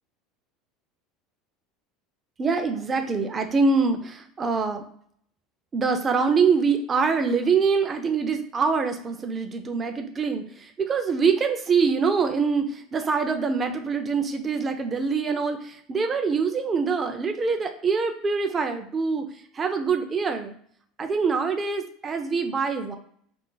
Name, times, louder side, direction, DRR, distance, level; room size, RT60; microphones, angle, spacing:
voice 1, 2.4-4.8 5.7-19.2 19.5-20.6 21.0-23.0, right 5 dB, 20° right, 6 dB, 0.3 m, -24 dB
2.4 x 2.2 x 3.8 m, 0.63 s
cardioid pair, 150°, 0 cm